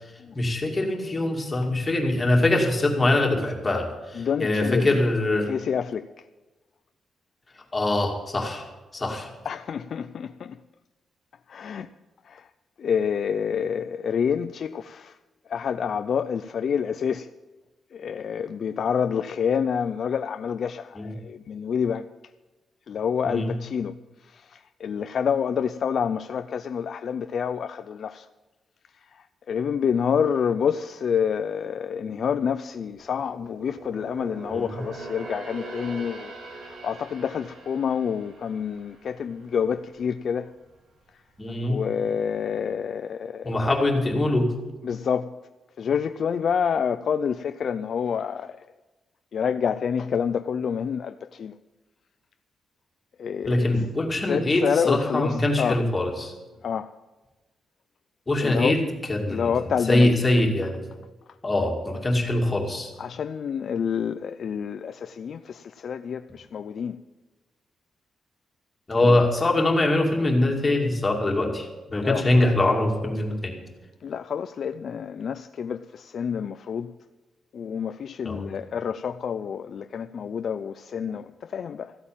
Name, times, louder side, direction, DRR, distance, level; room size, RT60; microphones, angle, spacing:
voice 1, 0.3-5.5 7.7-8.7 8.9-9.3 21.0-21.1 23.3-23.5 34.5-34.7 41.4-41.8 43.4-44.5 53.4-56.3 58.3-58.8 59.1-59.5 59.9-60.8 61.4-62.9 68.9-73.6 78.2-78.5, left 2 dB, 20° left, 2.4 m, -23 dB
voice 2, 4.1-5.0 5.4-6.2 9.4-10.6 11.5-11.9 12.2-12.5 12.8-15.2 15.5-17.3 17.9-22.1 22.9-23.9 24.2-28.3 29.0-40.5 41.6-43.6 44.8-45.3 45.8-48.7 49.3-51.6 53.2-53.7 54.2-55.8 56.6-56.9 58.4-58.8 59.3-60.1 63.0-67.0 69.0-69.3 72.0-72.2 74.0-76.9 77.5-82.0, left 7 dB, 50° left, 0.4 m, -28 dB
sound 1, 32.7-40.1 40.5-40.7 41.3-42.0 42.3-42.4, right 2 dB, 70° right, 2.9 m, -42 dB
14.5 x 8.5 x 8.8 m
wide cardioid pair, 155°, 0 cm